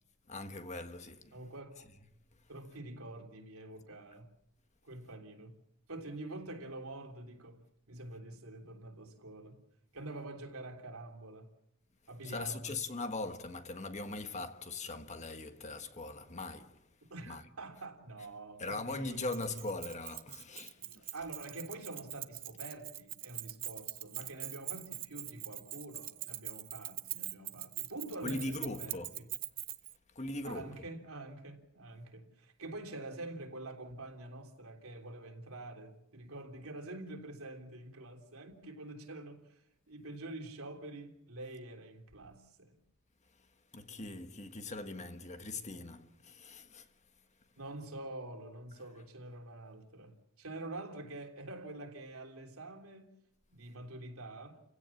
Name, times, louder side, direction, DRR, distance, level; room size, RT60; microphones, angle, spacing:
voice 1, 0.3-1.3 12.2-16.9 17.3-17.4 18.6-21.1 28.2-29.2 30.1-30.7 43.7-46.9, left 2 dB, 30° left, 1.5 m, -40 dB
voice 2, 1.3-1.9 2.5-4.3 4.8-5.6 5.9-7.6 7.9-9.6 9.9-11.5 12.1-12.8 17.1-19.6 20.8-29.3 30.4-42.7 47.6-53.1 53.5-54.6, right 2 dB, 75° right, 3.4 m, -46 dB
Keys jangling, 19.3-29.9, right 14 dB, 40° right, 0.8 m, -43 dB
30.0 x 17.0 x 7.2 m
head